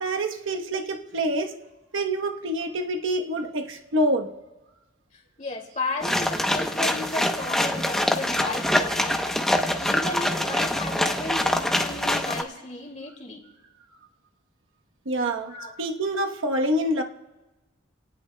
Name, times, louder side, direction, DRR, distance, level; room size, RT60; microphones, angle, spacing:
voice 1, 0.0-1.5 1.9-4.3 15.1-17.0, right 1 dB, 80° right, 4 dB, 1.1 m, -26 dB
voice 2, 5.1-9.2 9.8-13.4 15.5-15.7, left 2 dB, 35° left, 0 dB, 2.5 m, -34 dB
sound 1, 6.0-12.4, left 1 dB, ahead, 0.8 m, -24 dB
29.5 x 18.5 x 2.2 m, 1.1 s
head